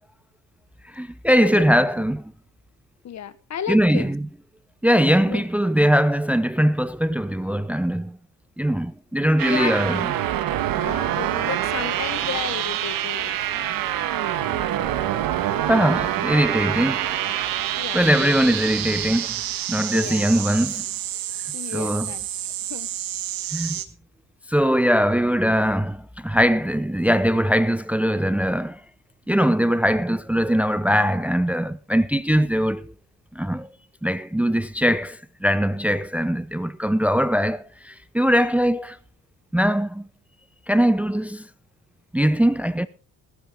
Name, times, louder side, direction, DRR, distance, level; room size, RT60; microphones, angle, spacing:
voice 1, 0.9-2.2 3.7-4.3 4.8-8.2 8.6-10.0 14.8-15.3 15.7-17.1 17.9-19.3 19.7-20.8 21.7-22.1 23.5-23.8 24.5-28.8 29.3-32.9 33.4-33.7 34.0-39.0 39.5-40.1 40.7-41.5 42.1-42.9, equal, 5° right, 0.7 m, -21 dB
voice 2, 3.0-4.1 5.3-5.4 9.4-9.8 10.8-13.7 17.7-18.3 19.9-20.4 21.5-22.2 22.7-22.9, left 9 dB, 50° left, 1.4 m, -33 dB
sound 1, 9.4-23.8, right 12 dB, 75° right, 1.6 m, -26 dB
20.0 x 10.5 x 3.8 m
cardioid pair, 85°, 34 cm